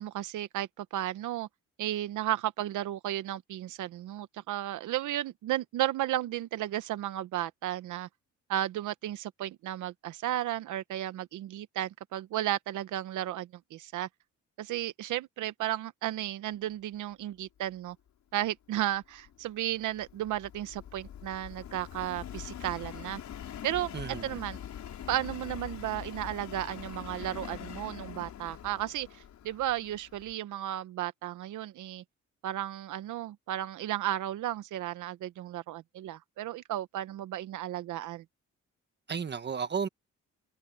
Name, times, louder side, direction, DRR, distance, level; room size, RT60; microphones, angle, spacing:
voice 1, 0.0-1.5 1.8-8.1 8.5-14.1 14.6-18.0 18.3-23.2 23.6-23.9 24.2-24.6 25.1-32.0 32.4-38.2, right 13 dB, 80° right, 0.9 m, -34 dB
Subway metro underground, 19.0-30.3, left 10 dB, 65° left, 5.4 m, -44 dB
voice 2, 23.9-24.4 39.1-39.9, right 6 dB, 35° right, 1.5 m, -33 dB
cardioid pair, 95°, 30 cm